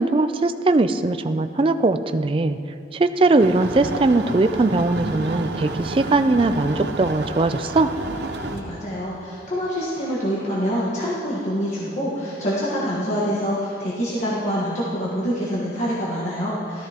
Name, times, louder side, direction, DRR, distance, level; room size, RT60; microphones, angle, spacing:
voice 1, 0.0-2.6 2.9-7.9, right 2 dB, 30° right, 10 dB, 0.3 m, -20 dB
sound 1, 3.4-8.6, right 2 dB, 80° right, 0.8 m, -30 dB
voice 2, 8.5-16.9, equal, 45° left, -7 dB, 1.3 m, -26 dB
14.0 x 13.0 x 2.9 m, 2.5 s
head